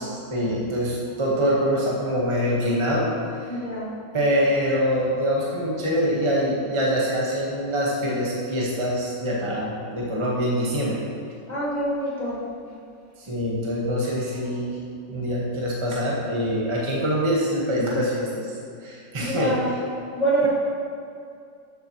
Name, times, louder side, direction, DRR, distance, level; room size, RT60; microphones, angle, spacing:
voice 1, 0.0-3.1 3.4-3.6 4.1-11.0 13.2-14.8 15.1-18.5 18.8-19.8, equal, 20° right, -5 dB, 1.0 m, -24 dB
voice 2, 3.5-3.9 11.5-12.4 19.1-19.7 20.2-20.5, right 1 dB, 25° left, -6 dB, 1.8 m, -25 dB
12.5 x 7.4 x 3.0 m, 2.4 s
omnidirectional pair, 2.0 m